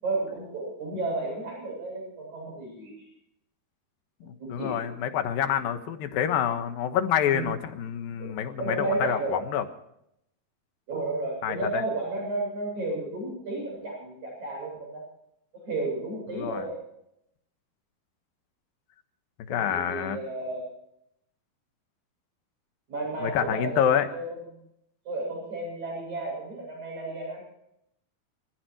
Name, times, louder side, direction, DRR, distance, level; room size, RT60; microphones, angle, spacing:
voice 1, 0.0-2.9 4.4-4.8 7.3-7.5 8.2-9.5 10.9-15.0 15.6-16.8 19.5-20.7 22.9-24.3 25.1-27.4, right 2 dB, 50° right, -1 dB, 9.2 m, -32 dB
voice 2, 4.2-9.6 11.4-11.8 16.3-16.7 19.5-20.2 23.2-24.1, left 9 dB, 70° left, 8 dB, 3.0 m, -27 dB
27.0 x 15.0 x 3.1 m, 0.77 s
omnidirectional pair, 4.4 m